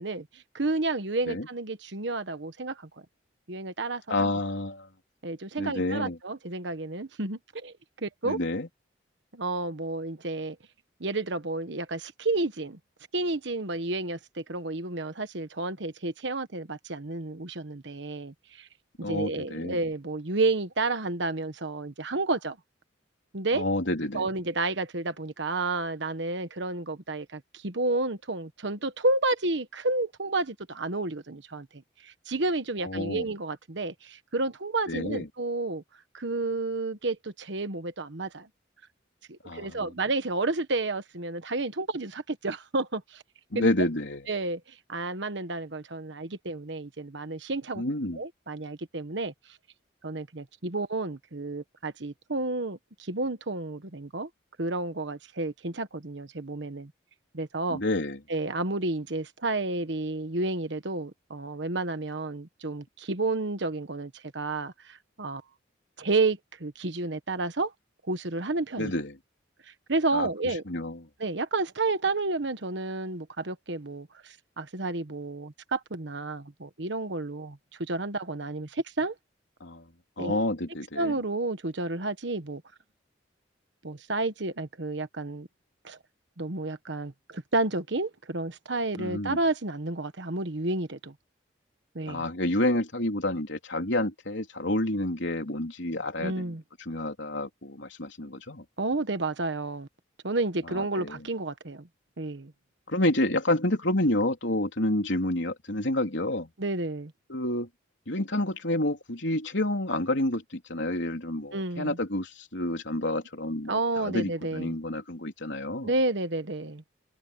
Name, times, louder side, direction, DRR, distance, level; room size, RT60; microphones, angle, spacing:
voice 1, 0.0-2.9 3.5-4.3 5.2-7.7 8.0-8.4 9.3-10.6 11.0-12.8 13.1-18.7 19.0-22.6 23.3-23.6 24.1-35.8 36.1-38.5 39.3-43.2 43.5-43.7 44.3-47.8 48.1-49.6 50.0-54.3 54.6-56.9 57.3-57.8 58.3-65.4 66.0-67.7 68.1-68.9 69.9-70.6 71.2-79.1 80.2-80.4 80.9-82.6 83.8-85.5 85.8-86.0 86.4-91.1 91.9-92.2 96.2-96.6 98.8-99.9 100.2-101.9 102.2-102.5 106.6-107.1 111.5-112.0 113.7-114.7 115.8-116.8, right 2 dB, 70° right, 1.3 m, -31 dB
voice 2, 4.1-4.9 5.6-6.2 8.2-8.7 19.0-19.8 23.5-24.3 32.8-33.3 34.9-35.3 39.5-39.9 43.5-44.3 47.8-48.2 57.7-58.2 68.8-69.2 70.1-70.3 70.7-71.0 79.6-79.9 80.2-81.2 89.0-89.4 92.1-96.5 96.8-98.6 100.7-101.2 102.9-106.5 107.3-107.7 108.1-115.9, left 1 dB, 75° left, 3.5 m, -29 dB
head